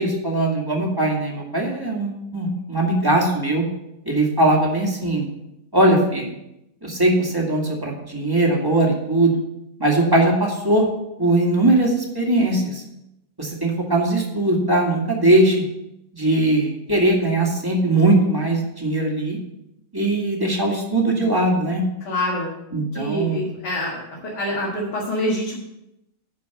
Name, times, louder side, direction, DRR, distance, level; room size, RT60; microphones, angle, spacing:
voice 1, 0.0-3.6 4.1-5.3 5.7-6.3 6.8-9.4 9.8-10.9 11.2-12.8 13.4-15.6 16.1-19.4 19.9-21.8 22.7-23.4, right 2 dB, 15° right, -1 dB, 1.8 m, -20 dB
voice 2, 22.0-22.5 22.9-25.6, left 1 dB, 70° left, -5 dB, 2.6 m, -26 dB
10.5 x 4.5 x 7.0 m, 0.86 s
omnidirectional pair, 1.9 m